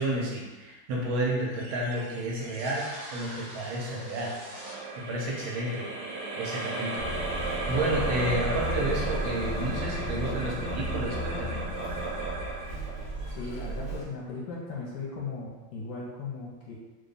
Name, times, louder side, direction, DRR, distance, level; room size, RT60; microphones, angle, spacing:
voice 1, 0.0-4.4 5.0-5.9 6.4-11.6, right 1 dB, 85° right, -3 dB, 1.6 m, -31 dB
sound 1, 1.6-14.2, right 3 dB, 70° right, 1.6 m, -36 dB
sound 2, 7.0-14.0, equal, 50° left, 0.7 m, -34 dB
voice 2, 13.3-16.7, left 4 dB, 70° left, -4 dB, 1.3 m, -37 dB
3.4 x 2.3 x 3.9 m, 1.2 s
omnidirectional pair, 2.2 m